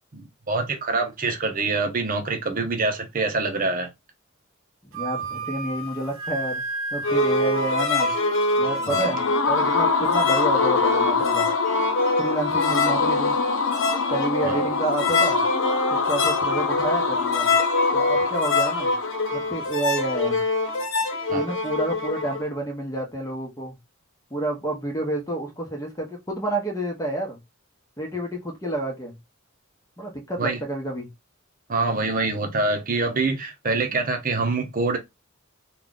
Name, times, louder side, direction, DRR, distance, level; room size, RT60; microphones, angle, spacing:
voice 1, 0.1-3.9 8.9-9.1 14.4-14.6 21.3-21.5 30.4-30.6 31.7-35.0, right 3 dB, 45° right, 0.8 m, -25 dB
voice 2, 4.8-6.6 6.9-8.1 8.6-11.5 12.2-13.4 14.1-15.4 15.9-17.5 17.9-18.9 19.3-20.4 21.3-23.7 24.3-27.4 28.0-29.2 30.0-31.1, right 1 dB, 15° left, 1.1 m, -29 dB
Wind instrument woodwind instrument, 4.9-8.7, right 4 dB, 80° right, 0.7 m, -33 dB
sound 1, 7.0-22.4, left 2 dB, 65° left, 1.0 m, -25 dB
sound 2, 8.8-19.7, left 5 dB, 90° left, 0.7 m, -25 dB
3.1 x 2.4 x 3.8 m
head